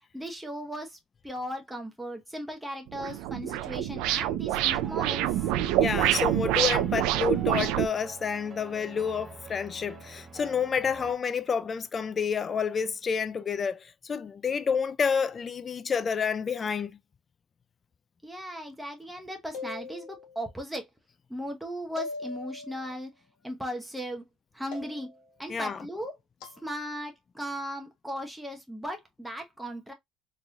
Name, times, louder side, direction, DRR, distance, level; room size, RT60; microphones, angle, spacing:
voice 1, 0.1-5.5 18.2-20.9 21.3-23.1 23.4-24.2 24.5-25.1 25.4-26.1 26.4-29.9, equal, 5° right, 0.9 m, -37 dB
sound 1, 2.9-7.9, right 13 dB, 85° right, 0.4 m, -26 dB
sound 2, 4.8-11.1, right 5 dB, 25° right, 0.5 m, -47 dB
voice 2, 5.8-17.0 25.5-25.8, left 6 dB, 30° left, 0.3 m, -29 dB
sound 3, 19.5-20.4 22.0-22.9 24.7-25.3 26.4-26.6, left 4 dB, 85° left, 1.2 m, -40 dB
3.9 x 3.1 x 2.2 m
cardioid pair, 145°, 0 cm